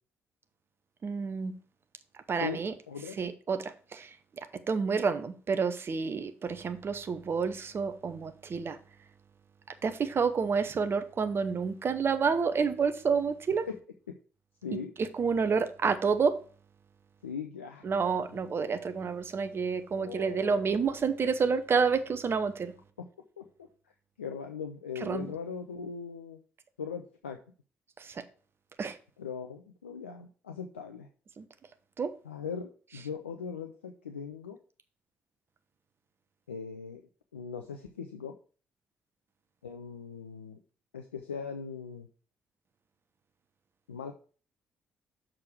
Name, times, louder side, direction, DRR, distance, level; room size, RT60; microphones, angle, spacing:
voice 1, 1.0-1.6 2.3-2.7 3.2-8.8 9.8-13.7 15.0-16.4 17.8-22.7 25.0-25.3 28.0-28.2 28.8-29.0 31.4-31.5 32.0-32.1, right 5 dB, 40° right, 0.8 m, -29 dB
voice 2, 17.2-17.9 18.3-18.4 19.9-21.0 23.0-23.1 23.4-23.7 24.2-26.4 26.8-27.4 29.2-31.1 32.2-34.6 36.5-37.0 37.3-38.4 39.6-40.6 40.9-42.1 43.9-44.1, left 6 dB, 80° left, 0.4 m, -39 dB
6.5 x 4.9 x 5.9 m
figure-of-eight pair, 45°, 6 cm